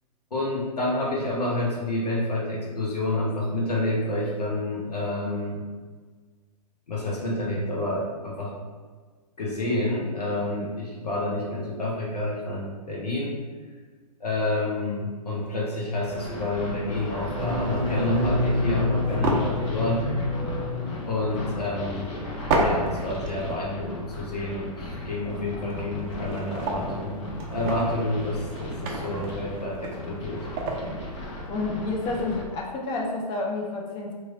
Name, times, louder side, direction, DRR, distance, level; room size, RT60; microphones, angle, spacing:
voice 1, 0.3-5.6 6.9-8.5 9.4-13.4 14.2-20.0 21.1-22.1 22.6-30.4, left 1 dB, 80° left, -3 dB, 0.8 m, -29 dB
sound 1, 15.5-15.7 16.5-16.7 17.2-18.4 19.2-20.4 20.7-20.8 22.5-23.3 23.6-23.7 25.4-25.5 25.7-27.0 27.4-31.0, right 2 dB, 25° right, 0.5 m, -31 dB
sound 2, 16.0-32.4, left 2 dB, 45° left, 1.0 m, -36 dB
Drone Ambient Glitch, 17.3-21.9, left 2 dB, 80° right, 0.7 m, -28 dB
voice 2, 31.5-34.1, left 3 dB, 20° left, 0 dB, 0.5 m, -29 dB
3.1 x 2.5 x 3.7 m, 1.5 s
figure-of-eight pair, 125°, 20 cm